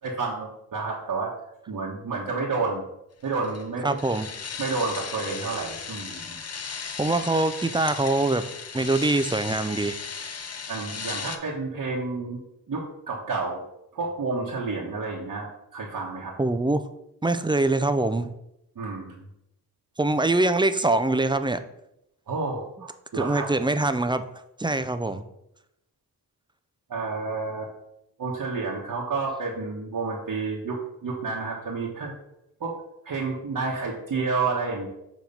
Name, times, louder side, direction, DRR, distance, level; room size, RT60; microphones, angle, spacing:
voice 1, 0.0-1.3 1.7-2.9 3.2-4.0 4.6-6.4 10.7-12.4 12.7-13.6 13.9-16.3 18.8-19.2 22.3-23.5 26.9-27.7 28.2-32.1 32.6-32.8 33.0-34.9, right 4 dB, 60° right, -3 dB, 1.1 m, -30 dB
sound 1, 3.3-11.4, left 6 dB, 40° left, 0.7 m, -36 dB
voice 2, 3.8-4.3 7.0-8.5 8.7-10.0 16.4-16.8 17.2-18.3 20.0-21.6 23.1-24.2 24.6-25.2, right 2 dB, 15° right, 10 dB, 0.4 m, -23 dB
6.9 x 3.0 x 5.4 m, 0.83 s
cardioid pair, 75°, 37 cm